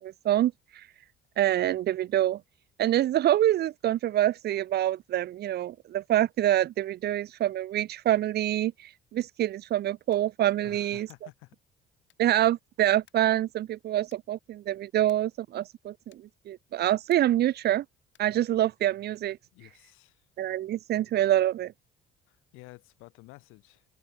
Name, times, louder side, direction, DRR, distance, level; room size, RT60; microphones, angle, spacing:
voice 1, 0.0-0.9 1.4-2.4 2.8-11.1 12.2-17.8 18.2-19.4 20.4-21.7, right 13 dB, 55° right, 0.6 m, -26 dB
sound 1, 9.1-9.5 10.0-10.4 11.0-11.4 12.0-12.4 13.1-13.4 14.0-14.4 15.0-15.4 16.1-16.4 17.1-17.5 18.1-18.4, left 13 dB, 65° left, 6.4 m, -65 dB
voice 2, 10.6-11.6 19.5-20.3 22.3-23.8, left 22 dB, 90° left, 4.6 m, -51 dB
cardioid pair, 105°, 20 cm